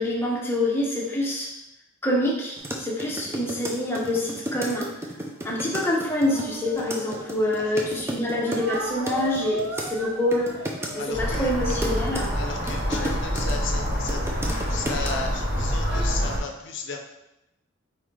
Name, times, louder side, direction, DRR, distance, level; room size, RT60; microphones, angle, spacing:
voice 1, 0.0-1.5 2.0-4.9 5.4-10.6 10.9-12.3 12.9-13.1, left 1 dB, 10° left, -3 dB, 0.7 m, -26 dB
sound 1, 2.6-9.9 10.3-10.9 11.3-13.5 13.9-15.1, right 1 dB, 10° right, 0.4 m, -33 dB
Speech, 6.2-7.8 8.4-12.4, right 2 dB, 65° right, 0.7 m, -37 dB
voice 2, 11.0-11.5 12.3-14.3 14.6-17.0, left 4 dB, 55° left, 3 dB, 0.6 m, -34 dB
sound 2, 11.1-16.4, equal, 45° right, 1.2 m, -26 dB
4.2 x 3.7 x 3.1 m, 0.89 s
head